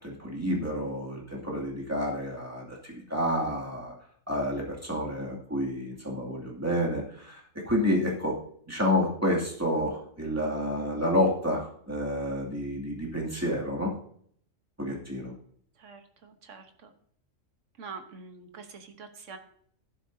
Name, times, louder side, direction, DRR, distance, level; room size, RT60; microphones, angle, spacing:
voice 1, 0.0-3.9 4.3-8.4 8.7-13.9 14.8-15.3, left 1 dB, 10° right, -3 dB, 2.5 m, -29 dB
voice 2, 15.8-16.9 17.8-19.4, right 5 dB, 65° right, 7 dB, 1.5 m, -45 dB
11.5 x 11.5 x 2.8 m, 0.62 s
omnidirectional pair, 1.4 m